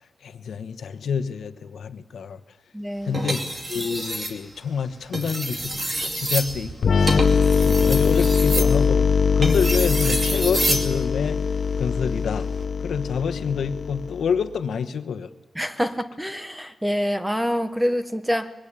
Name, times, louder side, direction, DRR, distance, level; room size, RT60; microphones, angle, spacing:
voice 1, 0.2-2.4 3.0-3.4 3.7-9.1 9.4-11.4 11.8-12.5 12.8-15.3, left 6 dB, 75° left, 10 dB, 1.2 m, -27 dB
voice 2, 2.7-3.3 15.5-18.5, equal, 5° right, 9 dB, 1.0 m, -26 dB
sound 1, 3.1-4.4 5.0-10.9 12.4-12.6, right 1 dB, 30° right, 2.5 m, -28 dB
sound 2, 6.8-14.4, left 5 dB, 50° left, 0.9 m, -21 dB
24.5 x 22.5 x 8.9 m, 1.3 s
wide cardioid pair, 170°, 0 cm